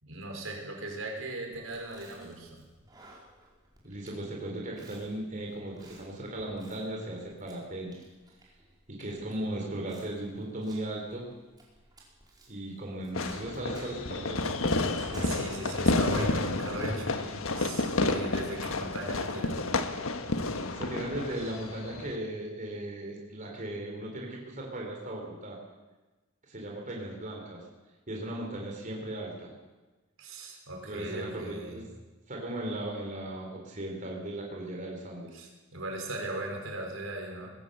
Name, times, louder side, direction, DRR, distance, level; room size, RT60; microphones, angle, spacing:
voice 1, 0.0-2.6 15.2-19.6 30.2-31.8 35.3-37.5, right 2 dB, 80° right, 1 dB, 5.4 m, -38 dB
Chewing mastication, 1.5-17.5, equal, 20° right, 5.3 m, -46 dB
voice 2, 3.8-7.9 8.9-11.3 12.5-14.6 20.7-25.6 26.5-27.6 28.1-29.5 30.8-31.9 32.3-35.4, right 1 dB, 40° right, -1 dB, 4.2 m, -37 dB
Fireworks, 13.1-22.2, left 2 dB, 90° left, 1.5 m, -30 dB
20.5 x 16.0 x 8.1 m, 1.2 s
head